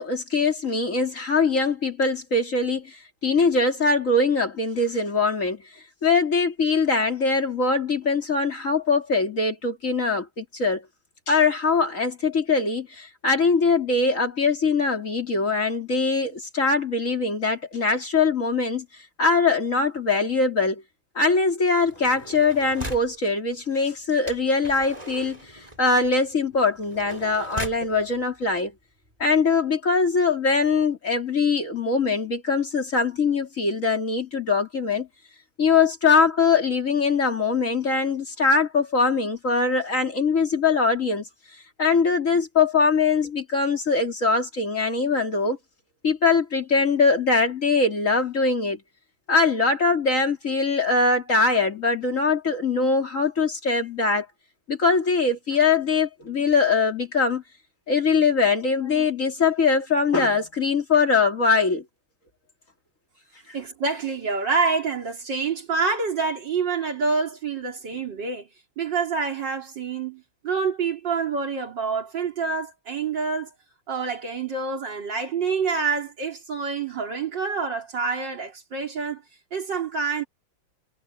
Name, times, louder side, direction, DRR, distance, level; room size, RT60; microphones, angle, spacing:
voice 1, 0.0-3.0 3.2-5.6 6.0-10.8 11.3-18.9 19.2-20.8 21.1-25.4 25.8-28.7 29.2-35.1 35.6-41.2 41.8-45.6 46.0-48.8 49.3-54.3 54.7-57.4 57.9-61.8, left 4 dB, 40° left, 3.1 m, -22 dB
sound 1, 21.9-23.2 24.3-27.9 28.7-28.8 29.1-29.4, right 1 dB, 20° right, 6.1 m, -39 dB
voice 2, 63.5-68.5 68.8-73.5 73.9-79.2 79.5-80.3, right 5 dB, 65° right, 3.8 m, -27 dB
omnidirectional pair, 2.1 m